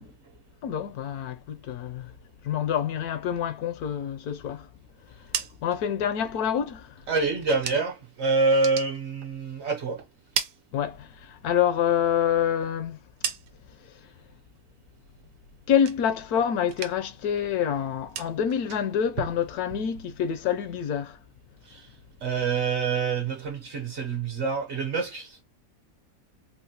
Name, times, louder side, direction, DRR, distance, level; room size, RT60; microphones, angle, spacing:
voice 1, 0.6-2.1 2.4-4.7 5.6-7.0 10.7-13.0 15.7-21.2, left 9 dB, 75° left, 1.1 m, -27 dB
sound 1, 5.0-8.1 8.4-9.8 10.1-11.4 11.7-13.9 14.2-14.7 15.1-16.4 16.6-17.3 17.5-20.4, right 8 dB, 85° right, 1.2 m, -38 dB
voice 2, 7.1-10.0 21.7-21.9 22.2-25.4, right 4 dB, 55° right, 0.9 m, -26 dB
3.9 x 2.1 x 2.7 m
omnidirectional pair, 1.7 m